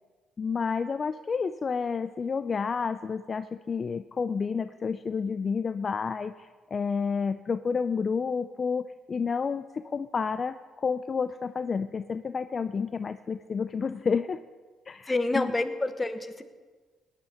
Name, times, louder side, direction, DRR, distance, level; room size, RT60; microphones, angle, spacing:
voice 1, 0.4-14.4 14.9-15.5, left 5 dB, 40° left, 11 dB, 0.4 m, -30 dB
voice 2, 15.1-16.4, left 2 dB, 20° left, 8 dB, 1.0 m, -28 dB
18.0 x 10.5 x 4.3 m, 1.4 s
cardioid pair, 90°, 0 cm